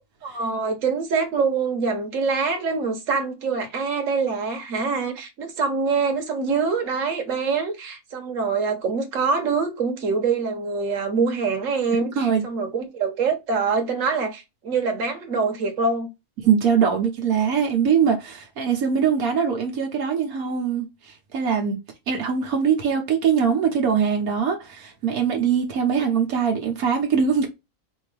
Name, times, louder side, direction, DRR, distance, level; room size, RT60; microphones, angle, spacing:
voice 1, 0.2-16.1, right 4 dB, 65° right, 1.4 m, -25 dB
voice 2, 12.0-12.4 16.4-21.8 22.1-27.5, right 7 dB, 80° right, 1.4 m, -22 dB
4.4 x 2.7 x 3.2 m
omnidirectional pair, 1.5 m